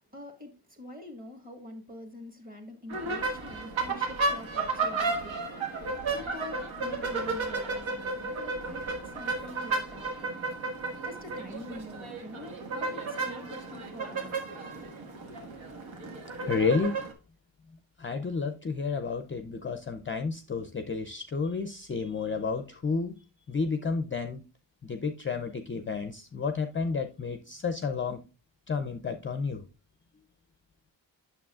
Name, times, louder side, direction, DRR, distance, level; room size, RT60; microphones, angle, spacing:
voice 1, 0.0-5.4 6.1-10.3 11.0-14.3, left 1 dB, 20° right, 1.5 m, -45 dB
sound 1, 2.9-17.1, right 3 dB, 80° right, 1.6 m, -33 dB
voice 2, 16.5-16.9 18.0-23.2 23.5-24.4 24.8-28.3 28.7-29.6, left 4 dB, 30° left, 0.4 m, -31 dB
8.6 x 6.7 x 2.3 m
wide cardioid pair, 150°, 46 cm